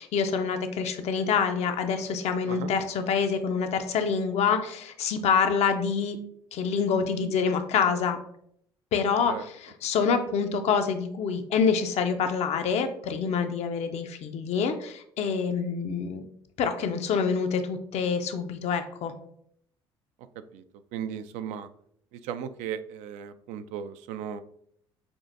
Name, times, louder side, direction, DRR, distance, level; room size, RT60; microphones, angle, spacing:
voice 1, 0.0-6.2 6.5-8.2 8.9-16.2 16.6-19.1, left 6 dB, 55° left, 7 dB, 0.6 m, -26 dB
voice 2, 20.9-21.7 22.1-24.4, right 8 dB, 65° right, 11 dB, 0.4 m, -36 dB
6.0 x 2.5 x 2.6 m, 0.68 s
hypercardioid pair, 60°, 13 cm